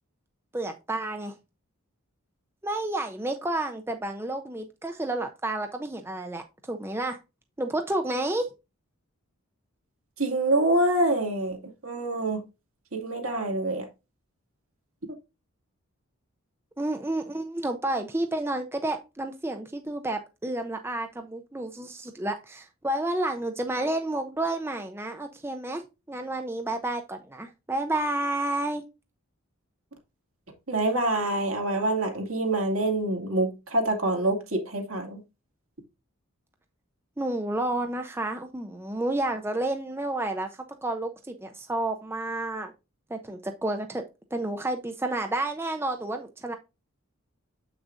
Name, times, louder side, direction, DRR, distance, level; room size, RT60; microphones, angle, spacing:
voice 1, 0.5-1.3 2.6-7.2 7.6-8.5 16.8-25.8 26.1-28.8 37.2-40.5 40.8-42.7 43.1-44.0 44.3-46.6, right 2 dB, 10° right, 0.4 m, -30 dB
voice 2, 10.2-11.6 11.8-12.4 12.9-13.9 30.7-35.2, right 1 dB, 75° right, 2.3 m, -26 dB
7.4 x 6.1 x 2.6 m
head